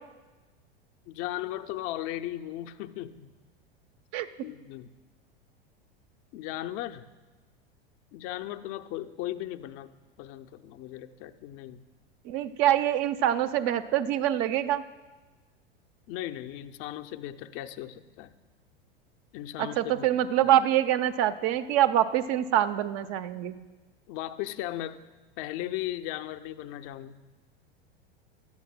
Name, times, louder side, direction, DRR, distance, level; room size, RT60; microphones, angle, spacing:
voice 1, 1.1-3.3 4.4-4.9 6.3-7.1 8.1-9.9 10.2-11.8 16.1-18.3 19.3-20.1 20.4-20.5 24.1-25.0 25.4-27.2, left 14 dB, 45° left, 9 dB, 0.6 m, -37 dB
voice 2, 12.3-14.8 19.6-23.5, right 12 dB, 45° right, 10 dB, 0.6 m, -25 dB
17.5 x 13.0 x 2.2 m, 1.2 s
hypercardioid pair, 90°, 31 cm